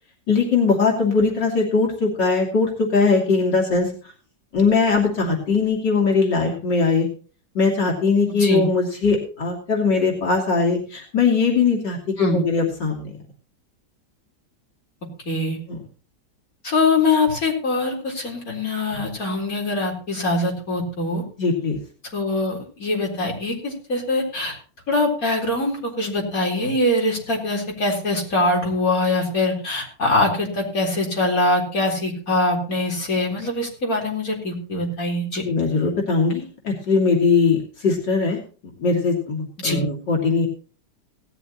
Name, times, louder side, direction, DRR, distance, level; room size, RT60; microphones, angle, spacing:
voice 1, 0.3-3.9 4.5-7.1 7.6-13.1 15.7-15.8 21.4-21.8 35.5-38.4 38.8-40.5, left 4 dB, 85° left, 0 dB, 3.5 m, -20 dB
voice 2, 8.3-8.7 12.2-12.4 15.3-15.6 16.6-21.2 22.1-24.6 24.9-35.5 39.6-39.8, left 2 dB, 50° left, -1 dB, 4.6 m, -23 dB
18.0 x 13.0 x 3.0 m, 0.39 s
omnidirectional pair, 1.9 m